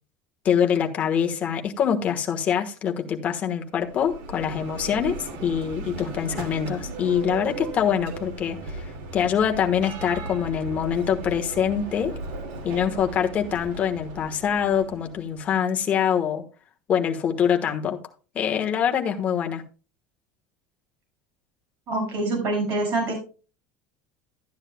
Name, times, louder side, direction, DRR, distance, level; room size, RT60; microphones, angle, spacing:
voice 1, 0.4-8.8 9.1-12.1 12.6-16.4 16.9-18.0 18.3-19.6, left 8 dB, 25° left, 1.2 m, -24 dB
Bell, 3.7-15.5, right 3 dB, 70° right, 2.5 m, -37 dB
voice 2, 21.9-23.2, right 2 dB, 40° right, 5.6 m, -25 dB
13.0 x 9.9 x 2.2 m
cardioid pair, 180°, 6 cm